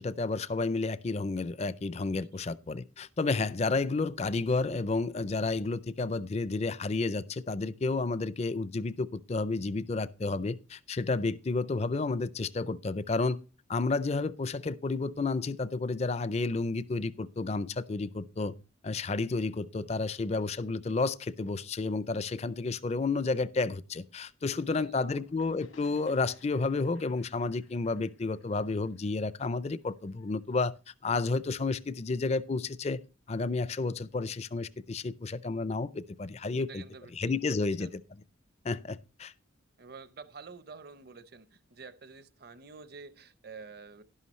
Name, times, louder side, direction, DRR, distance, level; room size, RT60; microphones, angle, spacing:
voice 1, 0.0-13.4 13.7-18.5 18.8-30.7 31.0-33.0 33.3-36.8 37.1-38.0 38.6-39.3, left 3 dB, 30° left, 0.4 m, -31 dB
voice 2, 24.4-25.0 36.6-37.1 37.4-37.9 39.8-44.0, right 4 dB, 50° right, 0.7 m, -49 dB
sound 1, 24.5-30.1, left 3 dB, 90° left, 1.9 m, -60 dB
11.5 x 11.0 x 3.1 m
head